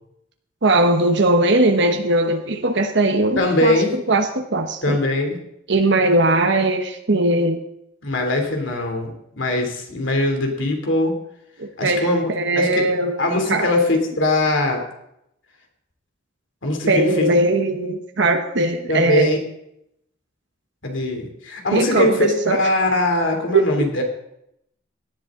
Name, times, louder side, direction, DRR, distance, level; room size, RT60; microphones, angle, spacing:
voice 1, 0.6-5.0 5.7-7.6 11.6-13.2 13.5-13.7 16.9-19.3 21.7-22.6 23.5-23.9, right 2 dB, 65° right, 4 dB, 1.1 m, -19 dB
voice 2, 3.4-3.9 4.8-5.4 8.0-11.1 11.8-12.8 13.2-14.8 16.6-17.3 18.9-19.4 20.8-24.0, left 2 dB, 70° left, 3 dB, 3.0 m, -21 dB
17.5 x 11.0 x 3.8 m, 0.78 s
head